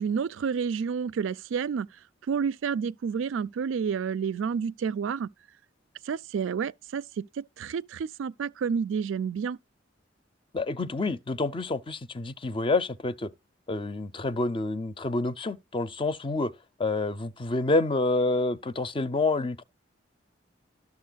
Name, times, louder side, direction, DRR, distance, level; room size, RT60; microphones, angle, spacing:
voice 1, 0.0-1.9 2.3-5.3 6.1-9.6, right 6 dB, 90° right, 0.4 m, -30 dB
voice 2, 10.5-13.3 13.7-16.5 16.8-19.6, left 2 dB, 25° left, 0.5 m, -28 dB
12.0 x 6.8 x 2.3 m
head